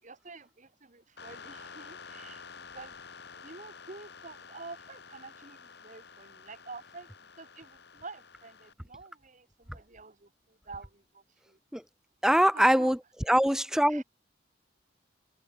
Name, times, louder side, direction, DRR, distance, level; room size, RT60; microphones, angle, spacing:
voice 1, 0.0-3.0 3.4-11.6 12.5-12.9 13.9-14.0, right 3 dB, 45° right, 2.7 m, -48 dB
sound 1, 1.2-8.7, left 5 dB, 60° left, 2.6 m, -50 dB
voice 2, 12.2-13.0 13.3-14.0, equal, 5° right, 0.9 m, -23 dB
head